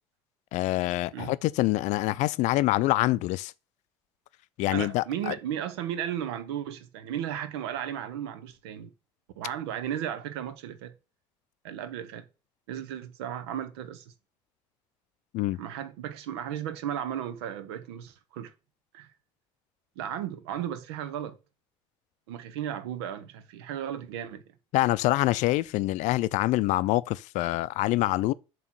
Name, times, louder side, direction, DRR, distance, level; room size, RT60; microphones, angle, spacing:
voice 1, 0.5-3.5 4.6-5.3 15.3-15.6 24.7-28.3, left 17 dB, 65° left, 0.4 m, -25 dB
voice 2, 4.7-8.9 9.4-10.9 11.6-12.2 12.7-14.0 15.5-18.5 18.9-19.1 20.0-21.4 22.3-24.4, right 10 dB, 85° right, 0.8 m, -35 dB
7.3 x 3.0 x 6.0 m
supercardioid pair, 80°, 13 cm